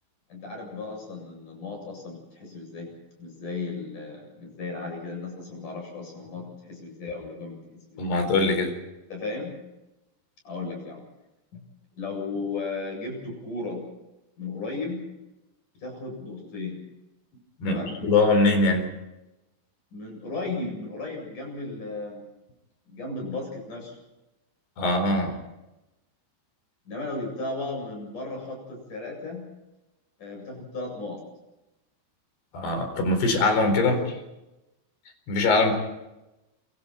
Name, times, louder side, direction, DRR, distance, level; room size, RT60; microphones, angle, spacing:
voice 1, 0.3-2.9 3.2-8.2 9.1-9.5 10.4-11.0 11.5-11.6 12.0-13.8 14.4-15.0 15.8-16.8 17.6-17.9 19.9-22.3 22.9-24.0 26.9-29.5 30.2-31.2 33.9-34.0 35.6-35.8, left 3 dB, 45° left, 1 dB, 9.5 m, -35 dB
voice 2, 8.0-8.7 17.6-18.9 24.8-25.4 32.5-34.0 35.3-35.7, left 3 dB, 70° left, 7 dB, 6.2 m, -22 dB
28.5 x 24.0 x 4.5 m, 0.96 s
omnidirectional pair, 4.9 m